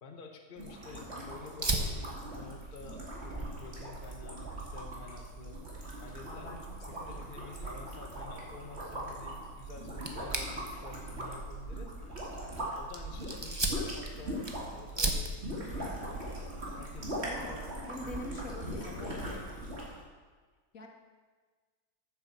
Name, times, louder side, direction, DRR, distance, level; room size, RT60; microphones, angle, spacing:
voice 1, 0.0-5.6 6.0-6.5 6.9-11.9 12.8-14.4 14.7-16.0 16.7-19.4, left 3 dB, 35° left, 3 dB, 0.9 m, -49 dB
sound 1, 0.6-12.8 13.1-20.0, equal, 40° right, 2.5 m, -41 dB
Fire, 1.6-19.9, right 2 dB, 20° right, 0.7 m, -40 dB
voice 2, 6.3-6.6 6.9-7.4 17.2-17.6 17.9-19.6 20.7-20.9, left 1 dB, 55° left, 2 dB, 1.6 m, -44 dB
9.3 x 7.2 x 7.1 m, 1.4 s
omnidirectional pair, 1.8 m